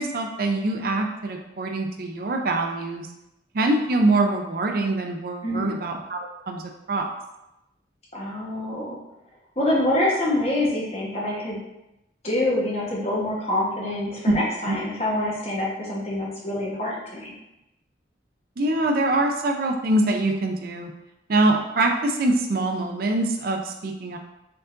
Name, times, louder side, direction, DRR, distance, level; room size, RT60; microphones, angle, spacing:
voice 1, 0.0-3.1 3.5-7.0 14.3-14.4 14.7-14.8 18.6-20.9 21.3-24.2, right 2 dB, 55° right, 3 dB, 0.4 m, -24 dB
voice 2, 5.4-5.7 8.1-9.0 9.6-11.6 12.2-17.3, left 1 dB, 35° left, -4 dB, 1.1 m, -26 dB
4.5 x 3.8 x 2.5 m, 0.91 s
head